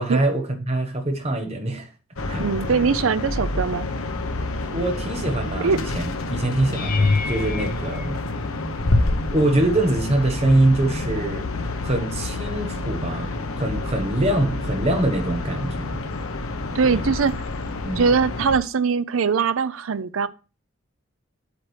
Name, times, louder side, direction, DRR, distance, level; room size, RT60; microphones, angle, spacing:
voice 1, 0.0-1.9 2.3-2.5 4.7-8.2 9.3-11.4 11.8-16.0 16.8-17.1 17.8-18.0, right 1 dB, 30° right, 1.2 m, -24 dB
sound 1, 2.2-18.6, left 2 dB, 80° left, 1.0 m, -28 dB
voice 2, 2.4-3.9 5.6-5.8 16.7-17.4 18.0-20.3, right 5 dB, 75° right, 0.5 m, -21 dB
sound 2, 6.7-9.0 9.7-10.1 10.5-10.7 15.0-15.1, left 3 dB, 40° left, 0.6 m, -26 dB
8.3 x 7.6 x 3.3 m
head